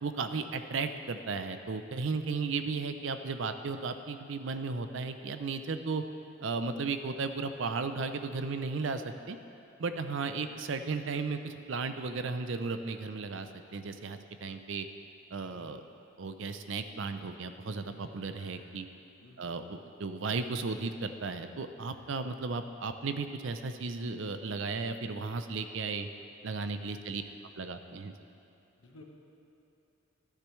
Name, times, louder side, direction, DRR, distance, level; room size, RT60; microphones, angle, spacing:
voice 1, 0.0-6.0 6.4-9.4 9.8-14.9 15.3-15.8 16.2-18.9 19.4-26.1 26.4-27.2 27.6-28.1, right 4 dB, 65° right, 9 dB, 0.5 m, -35 dB
voice 2, 15.4-15.7 18.4-18.7 19.2-19.6 26.8-27.1 28.8-29.0, left 2 dB, 80° left, 0 dB, 1.3 m, -56 dB
13.5 x 10.0 x 3.2 m, 2.9 s
head